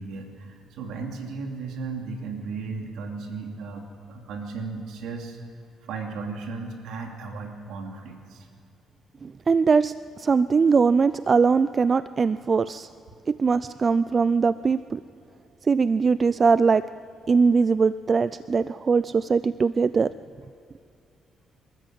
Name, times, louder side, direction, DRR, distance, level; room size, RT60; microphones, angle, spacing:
voice 1, 0.0-5.4 5.9-8.5, right 4 dB, 85° right, 2 dB, 2.7 m, -35 dB
voice 2, 9.2-12.9 13.3-15.0 15.6-16.8 17.3-20.1, right 5 dB, 40° right, 15 dB, 0.4 m, -21 dB
25.5 x 14.0 x 7.7 m, 2.5 s
cardioid pair, 90°, 0 cm